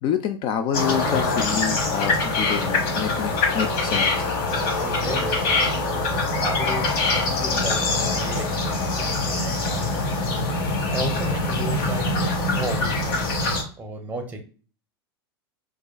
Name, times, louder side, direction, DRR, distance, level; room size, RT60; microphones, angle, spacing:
voice 1, 0.0-4.3, left 8 dB, 35° left, 10 dB, 0.3 m, -27 dB
sound 1, 0.7-13.6, left 2 dB, 55° left, 1.0 m, -24 dB
voice 2, 4.6-10.1 10.9-12.2 12.5-13.3 13.8-14.4, right 1 dB, 10° right, 5 dB, 0.7 m, -35 dB
4.6 x 2.4 x 2.2 m, 0.37 s
figure-of-eight pair, 90°, 14 cm